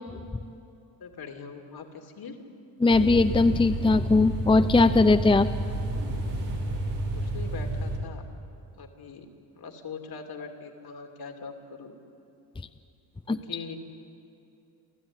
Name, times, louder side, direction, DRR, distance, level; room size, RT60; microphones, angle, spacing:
voice 1, 1.0-2.4 7.1-8.2 8.7-9.3 9.6-11.9 13.3-13.8, left 5 dB, 60° left, 4 dB, 2.8 m, -41 dB
voice 2, 2.8-5.5 13.3-13.4, left 3 dB, 10° left, 9 dB, 0.7 m, -20 dB
sound 1, 2.9-8.0, right 1 dB, 85° right, 4.6 m, -30 dB
28.5 x 14.0 x 9.9 m, 2.7 s
cardioid pair, 75°, 41 cm